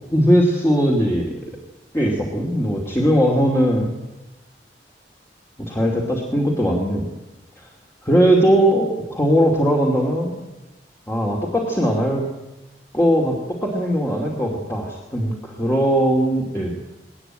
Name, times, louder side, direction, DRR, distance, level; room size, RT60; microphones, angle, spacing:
voice 1, 0.1-1.3 1.9-3.9 5.6-7.1 7.6-7.7 8.0-10.4 11.1-12.3 12.9-16.7, equal, 15° left, -1 dB, 2.5 m, -19 dB
20.5 x 19.0 x 9.0 m, 1.0 s
head